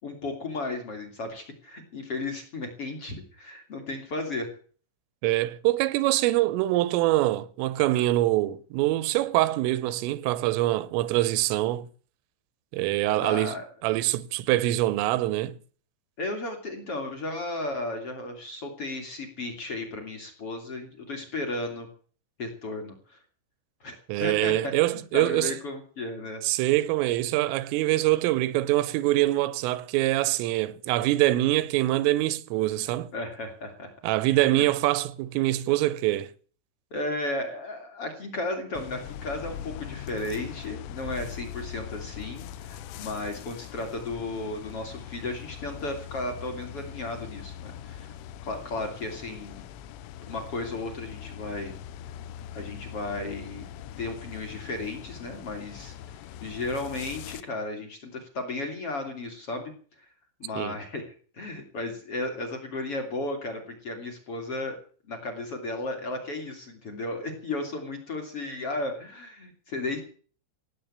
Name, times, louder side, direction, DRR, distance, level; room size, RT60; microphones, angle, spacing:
voice 1, 0.0-4.5 13.1-13.6 16.2-21.9 22.4-23.2 23.8-23.9 24.2-24.7 25.1-26.4 33.1-33.9 34.4-34.7 36.9-48.1 48.4-49.7 50.3-51.7 52.5-53.6 54.0-59.7 60.4-64.8 65.1-70.0, left 2 dB, 35° left, 3.0 m, -34 dB
voice 2, 5.2-11.9 12.7-13.5 13.8-15.6 24.1-25.5 26.4-33.1 34.0-36.3 60.6-60.8, right 16 dB, 85° right, 3.5 m, -24 dB
sound 1, 38.8-57.4, left 9 dB, 85° left, 3.5 m, -41 dB
17.5 x 8.8 x 8.7 m
omnidirectional pair, 5.7 m